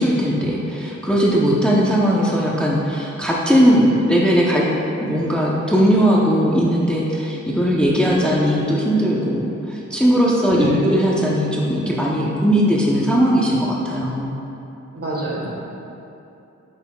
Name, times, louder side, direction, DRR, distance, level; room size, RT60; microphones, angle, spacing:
voice 1, 0.0-4.6 5.0-14.4, equal, 5° left, -4 dB, 0.6 m, -18 dB
voice 2, 10.5-10.9 14.9-15.5, right 2 dB, 50° right, -4 dB, 1.4 m, -26 dB
8.1 x 5.5 x 2.3 m, 2.8 s
wide cardioid pair, 70°, 31 cm